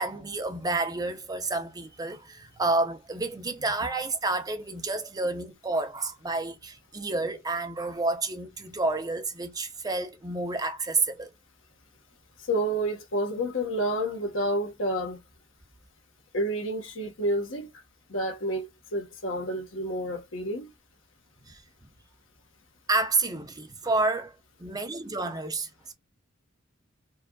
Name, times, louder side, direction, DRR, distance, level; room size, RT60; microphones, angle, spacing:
voice 1, 0.0-11.3 21.5-21.6 22.9-25.7, right 3 dB, 20° right, 0.7 m, -29 dB
voice 2, 12.5-15.2 16.3-17.7 18.1-18.7 18.9-20.7, right 1 dB, 70° left, 1.5 m, -29 dB
4.5 x 2.5 x 2.4 m
head